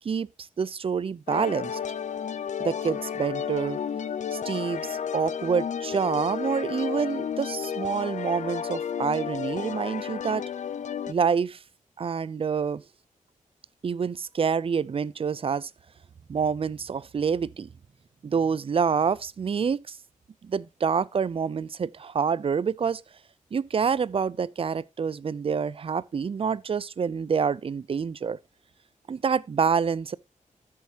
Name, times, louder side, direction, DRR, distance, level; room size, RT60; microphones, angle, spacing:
voice 1, 0.6-1.8 2.6-3.8 4.3-10.4 11.1-11.6 12.0-12.8 13.8-15.7 16.3-17.7 18.2-20.0 20.4-23.0 23.5-28.4 29.1-30.2, right 6 dB, 45° right, 0.5 m, -27 dB
sound 1, 1.3-11.1, left 8 dB, 60° left, 0.6 m, -32 dB
13.0 x 7.2 x 2.8 m
wide cardioid pair, 95°, 14 cm